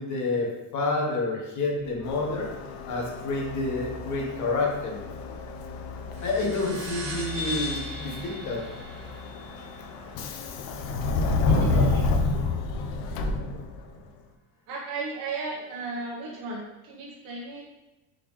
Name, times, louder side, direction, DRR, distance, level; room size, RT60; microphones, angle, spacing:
voice 1, 0.0-2.5 2.9-5.0 6.2-8.7 11.5-11.9, left 3 dB, 50° left, 0 dB, 1.1 m, -29 dB
sound 1, 1.7-11.5, left 3 dB, 90° left, 0.9 m, -43 dB
Subway metro underground, 2.0-14.0, left 3 dB, 65° left, 0.5 m, -30 dB
sound 2, 6.1-11.1, left 2 dB, 90° right, 1.3 m, -38 dB
voice 2, 11.4-12.1 14.7-17.6, right 3 dB, 60° right, -4 dB, 0.9 m, -35 dB
3.8 x 3.0 x 3.1 m, 1.0 s
cardioid pair, 125°, 39 cm